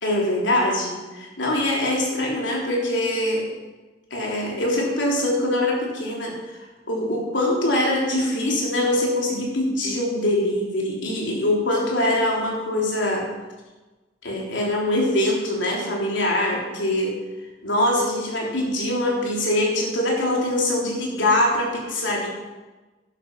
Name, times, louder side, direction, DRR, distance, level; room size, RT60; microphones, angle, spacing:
voice 1, 0.0-3.4 4.1-6.6 6.9-13.3 14.2-17.2 17.6-22.3, left 1 dB, 75° left, -2 dB, 3.7 m, -23 dB
11.5 x 11.5 x 5.7 m, 1.2 s
head